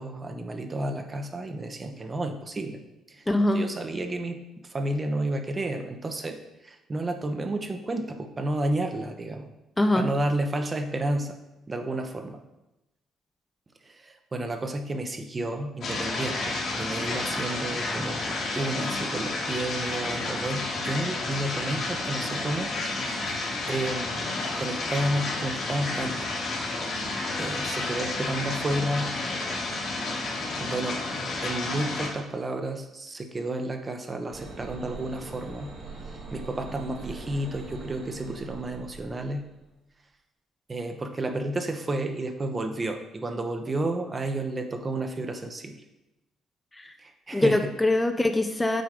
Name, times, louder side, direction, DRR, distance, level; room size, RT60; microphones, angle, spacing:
voice 1, 0.0-2.8 3.1-3.2 3.5-6.4 6.6-9.5 9.9-11.3 11.7-12.4 13.8-23.2 23.7-26.2 27.4-29.1 30.6-31.1 31.4-35.7 36.3-39.5 40.7-45.8 47.0-47.6, right 1 dB, 35° right, 5 dB, 1.0 m, -31 dB
voice 2, 3.3-3.6 9.8-10.1 46.7-46.9 47.3-48.8, left 1 dB, 15° left, 7 dB, 0.6 m, -23 dB
sound 1, 15.8-32.1, left 2 dB, 65° left, 1.9 m, -31 dB
sound 2, 34.3-39.6, right 3 dB, 65° right, 2.1 m, -42 dB
7.8 x 3.7 x 4.9 m, 0.95 s
hypercardioid pair, 55°, 0 cm